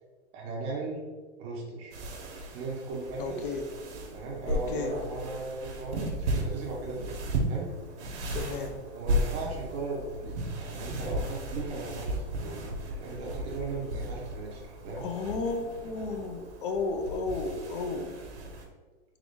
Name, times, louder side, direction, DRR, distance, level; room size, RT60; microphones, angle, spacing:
voice 1, 0.3-1.0 1.4-1.9 2.5-3.4 4.1-7.1 7.5-7.7 8.9-12.6 13.0-15.1, right 3 dB, 20° right, -2 dB, 0.6 m, -37 dB
sound 1, 1.9-18.7, right 1 dB, 80° right, 1.0 m, -35 dB
voice 2, 3.2-3.6 4.4-4.9 8.3-8.8 15.0-18.1, left 3 dB, 50° left, 6 dB, 0.6 m, -33 dB
3.8 x 3.0 x 3.5 m, 1.4 s
hypercardioid pair, 160°, 34 cm